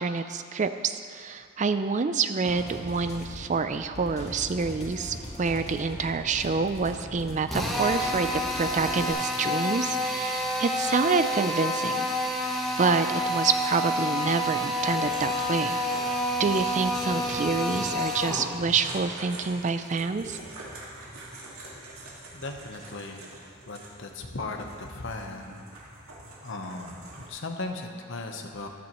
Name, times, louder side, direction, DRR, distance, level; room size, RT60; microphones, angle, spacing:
voice 1, 0.0-12.1 12.8-15.8 16.4-20.4, right 4 dB, 35° right, 10 dB, 0.4 m, -27 dB
sound 1, 2.4-9.1, equal, 30° left, 1.9 m, -40 dB
Drill, 7.5-18.5, left 1 dB, ahead, 1.0 m, -29 dB
sound 2, 13.2-27.3, right 1 dB, 75° right, 2.1 m, -45 dB
voice 2, 22.3-23.2 23.7-25.7 26.4-28.7, left 2 dB, 60° left, 3 dB, 1.0 m, -37 dB
14.0 x 11.5 x 3.1 m, 2.2 s
head